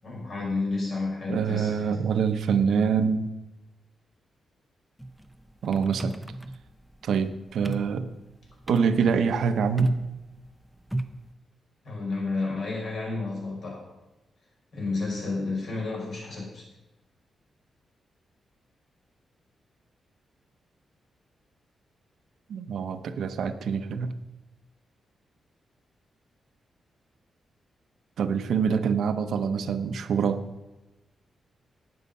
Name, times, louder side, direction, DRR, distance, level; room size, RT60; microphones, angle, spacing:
voice 1, 0.0-1.9 11.8-13.9 14.7-16.7, left 3 dB, 50° left, -3 dB, 5.4 m, -31 dB
voice 2, 1.3-3.3 5.6-6.1 7.0-8.1 8.7-9.9 22.5-24.1 28.2-30.5, right 6 dB, 75° right, 9 dB, 0.8 m, -25 dB
sound 1, 5.0-11.3, right 1 dB, ahead, 0.6 m, -36 dB
18.0 x 6.6 x 5.4 m, 1.0 s
wide cardioid pair, 165°, 0 cm